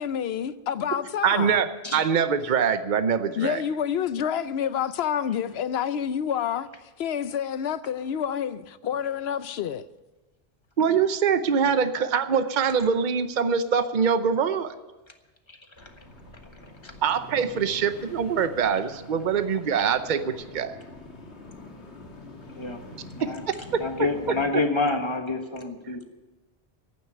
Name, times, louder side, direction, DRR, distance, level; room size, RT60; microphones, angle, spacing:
voice 1, 0.0-1.6 3.3-6.7 7.0-9.9, left 8 dB, 70° left, 0.9 m, -28 dB
voice 2, 1.2-1.7 1.9-3.6 10.8-14.7 17.0-20.7 23.2-23.3, right 6 dB, 50° right, 0.9 m, -24 dB
sound 1, 15.8-24.5, left 2 dB, 90° left, 2.0 m, -45 dB
voice 3, 23.8-26.0, left 3 dB, 25° left, 1.4 m, -28 dB
11.0 x 9.2 x 9.8 m
omnidirectional pair, 1.1 m